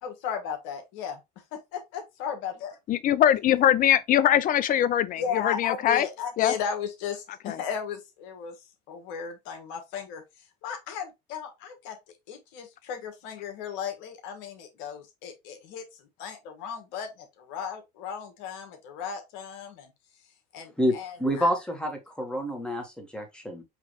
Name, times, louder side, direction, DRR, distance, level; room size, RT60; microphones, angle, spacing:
voice 1, 0.0-1.2 1.5-2.8 5.2-8.5 8.9-10.2 10.6-12.0 12.3-19.9 20.5-21.5, left 7 dB, 65° left, 1.3 m, -35 dB
voice 2, 2.9-6.1 6.4-6.5 7.4-7.6, left 11 dB, 40° left, 0.5 m, -22 dB
voice 3, 20.8-23.6, equal, 5° left, 1.7 m, -28 dB
4.9 x 3.0 x 3.1 m
hypercardioid pair, 85°, 21 cm